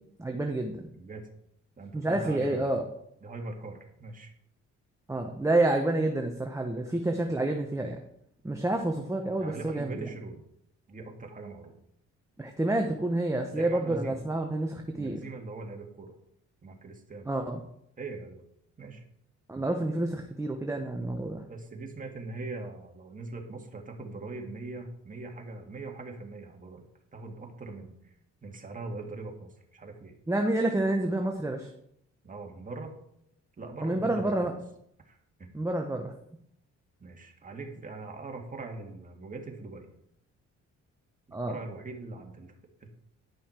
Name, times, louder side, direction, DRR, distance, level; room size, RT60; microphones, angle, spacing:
voice 1, 0.2-0.9 1.9-2.8 5.1-8.0 8.4-10.1 12.4-15.2 17.3-17.6 19.5-21.4 30.3-31.7 33.8-34.5 35.5-36.1 41.3-41.6, right 2 dB, 10° right, 3 dB, 0.9 m, -29 dB
voice 2, 0.9-1.3 1.8-2.7 3.2-4.3 9.4-10.5 10.9-11.7 13.5-14.2 14.9-16.1 16.6-17.3 18.0-18.4 18.8-19.0 21.5-26.8 27.1-28.1 28.4-30.1 32.2-32.9 33.6-34.3 35.1-35.5 37.0-39.9 41.5-42.5 42.8-42.9, right 3 dB, 25° right, 2 dB, 1.9 m, -41 dB
10.5 x 5.6 x 4.4 m, 0.74 s
cardioid pair, 90°, 30 cm